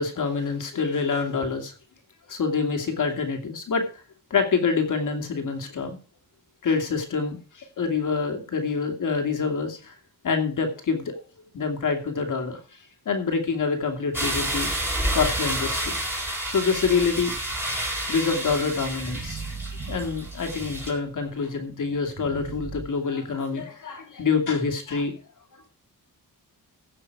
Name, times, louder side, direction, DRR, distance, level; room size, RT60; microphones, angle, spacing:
voice 1, 0.0-1.7 2.3-3.8 4.3-6.0 6.6-9.9 10.2-11.2 11.5-12.6 13.1-14.7 15.1-16.0 16.5-17.3 18.1-19.4 19.9-25.1, left 5 dB, 60° left, 4 dB, 2.6 m, -26 dB
sound 1, 14.1-20.9, right 1 dB, 5° right, 3.9 m, -29 dB
sound 2, 17.1-21.4 21.9-22.8, right 4 dB, 55° right, 3.5 m, -40 dB
16.0 x 6.8 x 4.8 m, 0.34 s
wide cardioid pair, 135°, 35 cm